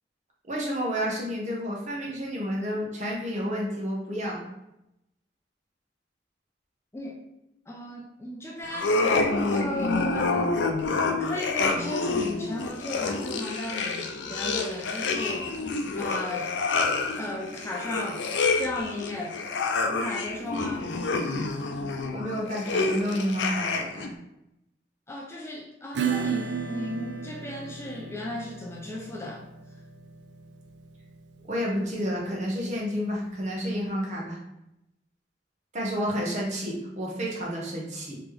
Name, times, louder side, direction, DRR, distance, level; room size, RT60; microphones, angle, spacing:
voice 1, 0.5-4.4 22.1-24.1 31.5-34.4 35.7-38.2, equal, 40° right, -2 dB, 0.9 m, -30 dB
voice 2, 7.7-8.9 9.5-10.5 11.2-16.5 17.2-18.2 18.6-19.4 19.9-20.9 25.1-29.4, left 1 dB, 15° left, -1 dB, 0.4 m, -35 dB
sound 1, 8.7-24.1, left 3 dB, 85° left, 0.4 m, -28 dB
Acoustic guitar / Strum, 25.9-33.2, right 6 dB, 85° right, 0.4 m, -35 dB
3.4 x 3.0 x 3.4 m, 0.87 s
head